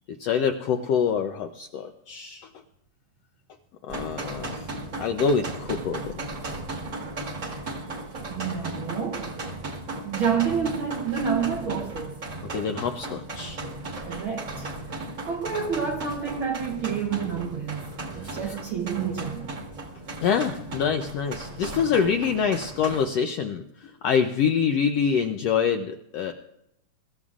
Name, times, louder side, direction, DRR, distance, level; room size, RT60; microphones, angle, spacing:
voice 1, 0.1-2.5 3.8-6.1 12.5-13.6 18.4-18.6 20.2-26.3, left 6 dB, 80° left, 1.4 m, -26 dB
sound 1, 3.9-23.1, right 2 dB, 35° right, 1.3 m, -36 dB
voice 2, 8.3-9.3 10.0-12.2 14.0-14.7 15.2-17.8 18.1-19.5, right 7 dB, 85° right, 1.1 m, -28 dB
24.0 x 13.5 x 2.5 m
omnidirectional pair, 3.7 m